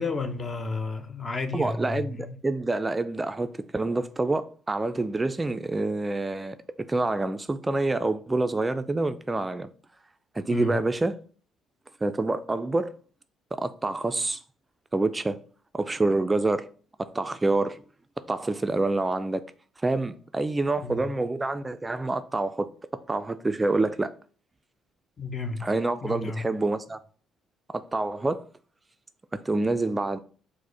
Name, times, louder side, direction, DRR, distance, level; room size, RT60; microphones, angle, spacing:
voice 1, 0.0-2.4 10.5-10.8 20.8-21.1 25.2-25.6 26.0-26.4, left 3 dB, 35° left, 0.7 m, -32 dB
voice 2, 1.5-6.6 6.9-9.7 10.3-11.2 12.0-13.0 13.5-14.4 14.9-15.4 15.7-16.7 17.0-17.8 18.3-19.4 19.8-22.7 23.1-24.1 25.6-27.0 27.7-28.4 29.5-30.2, right 2 dB, 20° right, 0.3 m, -27 dB
4.7 x 2.1 x 4.6 m
supercardioid pair, 65°, 0 cm